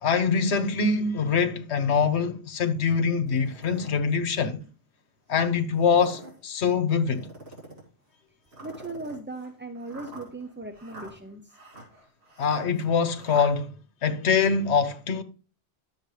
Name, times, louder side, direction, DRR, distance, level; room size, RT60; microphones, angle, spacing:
voice 1, 0.0-4.6 5.3-7.3 12.4-13.7 14.0-15.2, left 5 dB, 80° left, 1.1 m, -24 dB
sound 1, 3.3-4.0 4.6-4.7 5.7-6.4 7.1-7.9 8.5-13.5, right 2 dB, 70° right, 2.9 m, -46 dB
voice 2, 8.6-11.5, right 2 dB, 15° right, 0.5 m, -38 dB
11.0 x 7.2 x 3.2 m
omnidirectional pair, 1.1 m